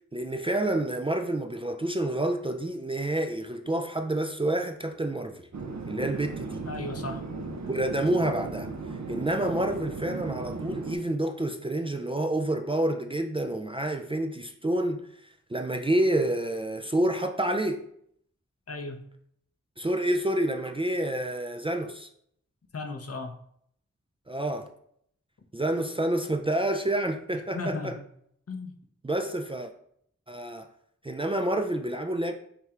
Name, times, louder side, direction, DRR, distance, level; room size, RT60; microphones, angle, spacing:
voice 1, 0.1-5.4 5.9-6.6 7.6-17.8 19.8-22.1 24.3-24.7 25.5-28.0 29.0-29.7 30.3-30.7 31.0-32.3, right 1 dB, 20° right, 0.3 m, -28 dB
Chatter / Fixed-wing aircraft airplane, 5.5-11.0, right 3 dB, 70° right, 0.6 m, -36 dB
voice 2, 6.7-7.3 18.7-19.0 22.7-23.4 27.5-27.9 28.5-28.7, left 3 dB, 55° left, 0.6 m, -35 dB
5.6 x 3.2 x 2.4 m
wide cardioid pair, 45°, 29 cm